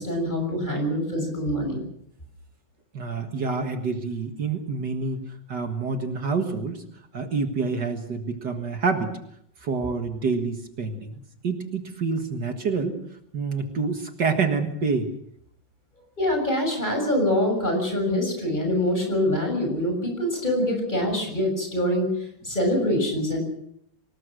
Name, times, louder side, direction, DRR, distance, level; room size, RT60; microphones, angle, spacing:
voice 1, 0.0-1.8 16.2-22.1 22.4-23.4, left 1 dB, 20° left, 3 dB, 6.9 m, -24 dB
voice 2, 2.9-6.8 7.1-9.1 9.6-11.2 11.4-13.0 13.3-15.1, right 4 dB, 60° right, 5 dB, 2.3 m, -27 dB
25.5 x 19.5 x 6.4 m, 0.71 s
omnidirectional pair, 2.1 m